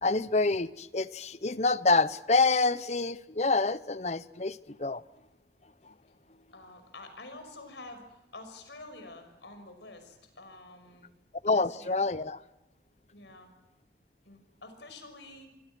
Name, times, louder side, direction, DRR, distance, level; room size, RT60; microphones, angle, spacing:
voice 1, 0.0-5.0 11.4-12.4, left 3 dB, 40° left, 0.8 m, -27 dB
voice 2, 6.5-11.1 11.5-12.0 13.1-13.5 14.2-15.5, left 2 dB, 90° left, 6.0 m, -48 dB
25.5 x 25.5 x 6.2 m
head